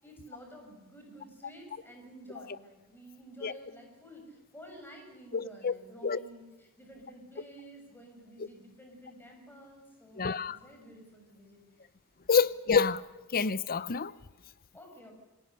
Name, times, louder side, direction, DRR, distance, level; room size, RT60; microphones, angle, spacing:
voice 1, 0.0-11.9 14.7-15.1, equal, 10° left, 6.7 m, -51 dB
voice 2, 5.3-5.7 6.0-6.2 8.4-8.5 10.2-10.6 12.3-13.0 13.3-14.1, left 5 dB, 40° left, 0.7 m, -27 dB
27.0 x 19.5 x 6.7 m
head